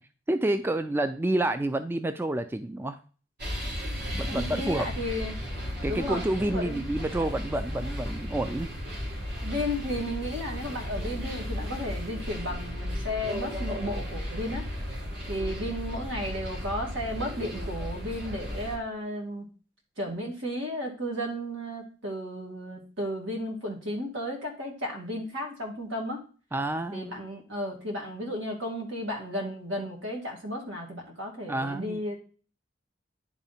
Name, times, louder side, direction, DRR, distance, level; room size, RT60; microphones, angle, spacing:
voice 1, 0.3-3.0 4.1-4.9 5.8-8.7 26.5-27.1 31.5-32.0, right 1 dB, 10° right, 9 dB, 0.3 m, -29 dB
sound 1, 3.4-18.8, equal, 55° right, 3.1 m, -35 dB
voice 2, 4.3-5.4 5.9-6.8 9.4-14.7 15.3-19.5 20.0-26.2 26.9-32.2, equal, 80° right, 1 dB, 2.3 m, -34 dB
9.9 x 3.6 x 4.2 m, 0.38 s
head